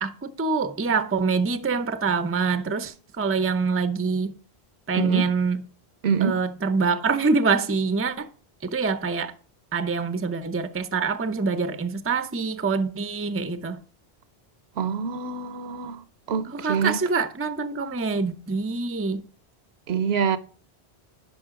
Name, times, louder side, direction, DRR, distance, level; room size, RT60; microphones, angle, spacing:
voice 1, 0.0-4.3 4.9-5.6 6.2-8.3 8.6-9.3 9.7-13.8 16.5-19.2, right 4 dB, 15° right, 0.5 m, -25 dB
voice 2, 4.9-5.2 6.0-6.4 14.8-16.0 16.3-17.0 19.9-20.4, right 6 dB, 75° right, 1.0 m, -25 dB
11.0 x 5.4 x 3.7 m
omnidirectional pair, 1.1 m